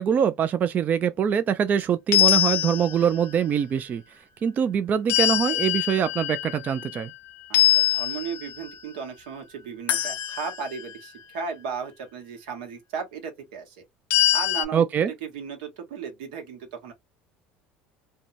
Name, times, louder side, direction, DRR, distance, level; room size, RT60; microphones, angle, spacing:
voice 1, 0.0-4.0 4.4-7.1 14.7-15.1, right 8 dB, 40° right, 0.3 m, -23 dB
sound 1, 2.1-3.3 5.1-7.1 7.5-8.8 9.9-10.9 14.1-14.7, left 13 dB, 60° left, 0.5 m, -23 dB
voice 2, 7.9-13.8 14.3-14.8 15.2-16.9, right 6 dB, 85° right, 1.0 m, -35 dB
2.7 x 2.1 x 2.5 m
supercardioid pair, 90°, 5 cm